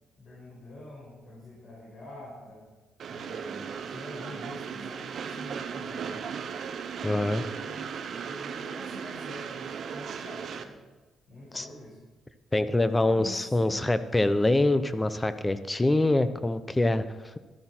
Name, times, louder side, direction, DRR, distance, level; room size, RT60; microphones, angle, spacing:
voice 1, 0.2-2.7 3.0-6.3 7.2-7.9 8.2-10.8 11.3-12.0 13.0-13.8, left 1 dB, 45° left, -5 dB, 5.6 m, -45 dB
Train, 3.0-10.6, right 7 dB, 60° right, 1.0 m, -37 dB
voice 2, 7.0-7.4 11.5-11.7 12.5-17.0, left 2 dB, 15° left, 12 dB, 0.8 m, -25 dB
13.5 x 13.0 x 4.5 m, 1.2 s
cardioid pair, 90°, 0 cm